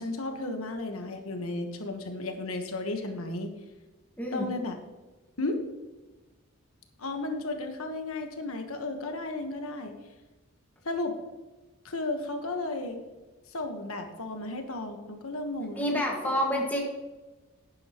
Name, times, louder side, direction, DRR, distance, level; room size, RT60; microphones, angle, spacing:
voice 1, 0.0-3.5 4.3-4.8 5.4-5.6 7.0-9.9 10.8-11.2 11.8-13.0 13.5-15.8 16.1-16.3, left 2 dB, 85° left, 5 dB, 1.3 m, -34 dB
voice 2, 4.2-4.5 15.8-16.8, equal, 10° left, -1 dB, 1.7 m, -28 dB
11.0 x 9.8 x 3.0 m, 1.2 s
head